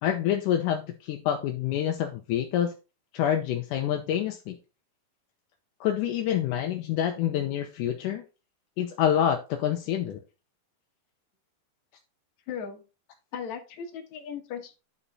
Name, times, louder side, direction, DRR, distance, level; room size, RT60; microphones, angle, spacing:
voice 1, 0.0-2.7 3.1-4.6 5.8-8.2 8.8-10.2, left 10 dB, 80° left, 4 dB, 2.0 m, -27 dB
voice 2, 12.5-12.8 13.3-14.7, left 7 dB, 60° left, 3 dB, 2.3 m, -37 dB
10.0 x 4.2 x 4.1 m, 0.31 s
omnidirectional pair, 4.1 m